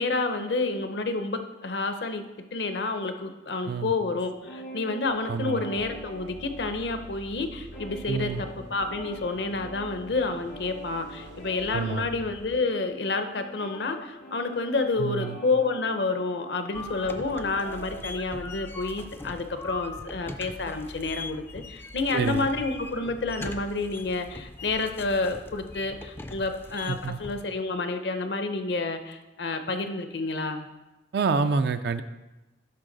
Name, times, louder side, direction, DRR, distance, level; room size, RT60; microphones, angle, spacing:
voice 1, 0.0-30.7, left 3 dB, 65° left, 8 dB, 0.7 m, -29 dB
sound 1, 4.3-7.1 7.4-18.0, right 1 dB, 85° left, 2.4 m, -45 dB
voice 2, 5.3-5.6 8.1-8.4 11.7-12.1 15.0-15.4 22.1-22.5 26.9-27.2 31.1-32.0, right 4 dB, 65° right, 9 dB, 0.4 m, -27 dB
sound 2, 5.8-12.6, right 1 dB, 90° right, 0.8 m, -46 dB
sound 3, 16.7-27.4, left 2 dB, 15° left, 0.3 m, -41 dB
11.0 x 4.6 x 3.9 m, 1.0 s
head